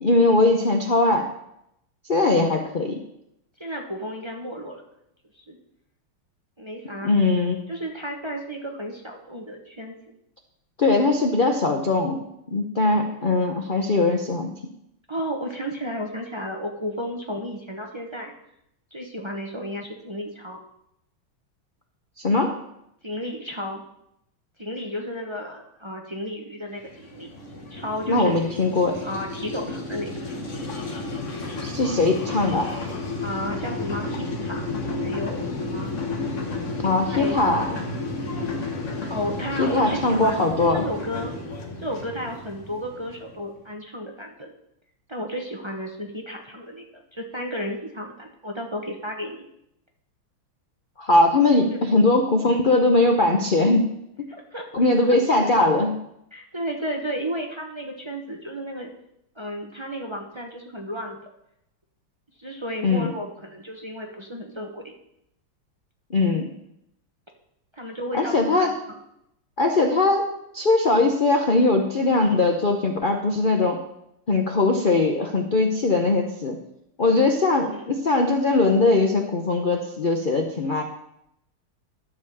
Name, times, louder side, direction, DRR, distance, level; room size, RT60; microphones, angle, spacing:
voice 1, 0.0-1.3 2.1-3.0 7.0-7.6 10.8-14.5 22.2-22.5 28.1-29.0 31.6-32.7 36.8-37.8 39.6-40.8 51.0-53.9 54.7-56.0 62.8-63.1 66.1-66.5 68.1-68.7 69.6-70.3 70.5-73.8 74.3-76.6 77.0-80.8, left 2 dB, 85° left, 3 dB, 0.4 m, -20 dB
voice 2, 3.6-4.8 5.5-5.6 6.6-7.1 7.7-9.9 12.8-13.1 15.1-18.3 18.9-20.6 23.0-23.8 24.6-27.3 27.7-28.3 29.0-30.1 33.2-35.9 37.1-37.7 38.3-38.5 39.1-41.3 41.8-44.5 45.1-49.4 51.7-51.8 54.3-54.7 55.1-55.5 56.3-58.9 59.4-61.2 62.4-64.9 67.7-69.0 77.7-77.9, equal, 30° right, 1 dB, 0.5 m, -33 dB
sound 1, 26.8-43.4, left 3 dB, 40° left, 1.6 m, -32 dB
12.5 x 5.0 x 7.0 m, 0.79 s
omnidirectional pair, 2.3 m